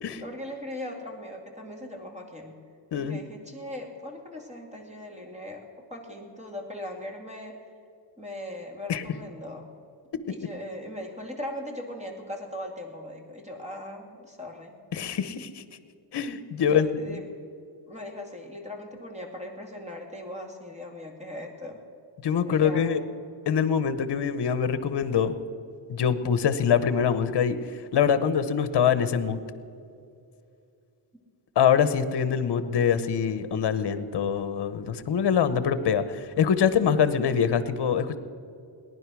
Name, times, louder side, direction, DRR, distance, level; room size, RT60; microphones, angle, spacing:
voice 1, 0.2-2.6 2.9-5.7 5.9-7.6 8.2-9.7 10.3-14.8 16.6-17.2 17.9-21.8 22.4-23.1, left 1 dB, 15° right, 2 dB, 2.2 m, -39 dB
voice 2, 14.9-15.6 16.1-17.2 22.2-23.0 23.5-25.3 25.9-27.6 27.9-29.4 31.6-38.2, left 7 dB, 55° left, 12 dB, 1.0 m, -24 dB
18.5 x 11.0 x 6.2 m, 2.4 s
wide cardioid pair, 150°, 49 cm